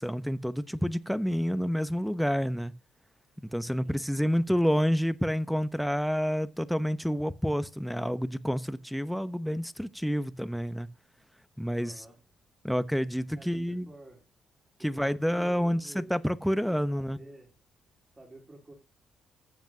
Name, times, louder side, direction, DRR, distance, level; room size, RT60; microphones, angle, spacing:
voice 1, 0.0-2.7 3.4-10.9 11.6-12.0 12.6-13.9 14.8-17.2, equal, ahead, 0.9 m, -29 dB
voice 2, 11.7-12.2 13.4-14.2 14.9-16.2 16.7-17.5 18.2-18.7, right 1 dB, 30° right, 3.9 m, -50 dB
14.5 x 7.3 x 2.8 m
supercardioid pair, 55°, 0 cm